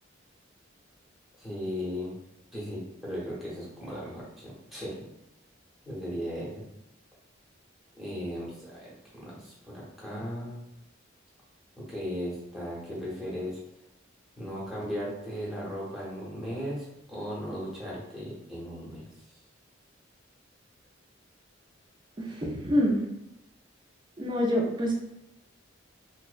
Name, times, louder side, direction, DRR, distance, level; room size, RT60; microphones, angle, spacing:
voice 1, 1.4-2.2 2.5-5.1 5.8-6.6 8.0-10.6 11.8-13.6 14.4-19.4, equal, ahead, -7 dB, 0.7 m, -37 dB
voice 2, 22.2-23.0 24.2-24.9, equal, 25° right, -1 dB, 0.4 m, -26 dB
2.5 x 2.0 x 2.4 m, 0.86 s
head